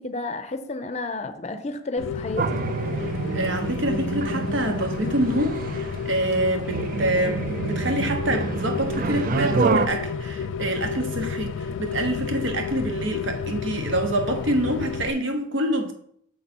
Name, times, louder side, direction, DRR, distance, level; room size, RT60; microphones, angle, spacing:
voice 1, 0.0-2.6, left 2 dB, 35° left, 0.5 m, -31 dB
Rain, 2.0-15.1, left 6 dB, 90° left, 0.3 m, -31 dB
sound 1, 2.4-9.9, right 4 dB, 45° right, 0.3 m, -28 dB
voice 2, 3.0-15.9, right 1 dB, 70° right, 1.0 m, -26 dB
6.6 x 5.4 x 4.4 m
head